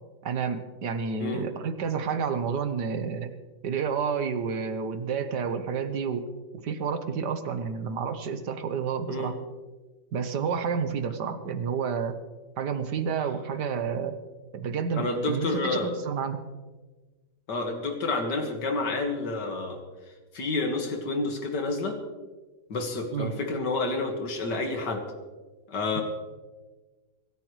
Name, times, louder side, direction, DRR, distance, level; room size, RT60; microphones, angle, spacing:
voice 1, 0.2-3.4 3.6-6.3 6.6-9.4 10.1-12.2 12.6-14.2 14.5-16.4 23.1-23.3, right 6 dB, 80° right, 9 dB, 1.8 m, -30 dB
voice 2, 14.9-15.9 17.5-19.8 20.3-22.0 22.7-25.0 25.7-26.0, left 3 dB, 90° left, 3 dB, 2.4 m, -29 dB
25.0 x 13.0 x 3.2 m, 1.3 s
omnidirectional pair, 1.8 m